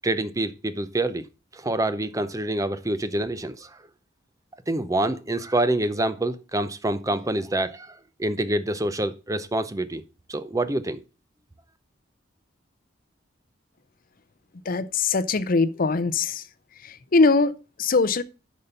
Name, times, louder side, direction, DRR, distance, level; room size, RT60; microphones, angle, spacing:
voice 1, 0.0-1.3 1.5-3.7 4.7-10.0 10.3-11.0, right 1 dB, 15° right, 0.6 m, -26 dB
voice 2, 14.7-16.4 16.8-18.2, left 3 dB, 50° left, 0.6 m, -22 dB
9.9 x 5.3 x 5.4 m
head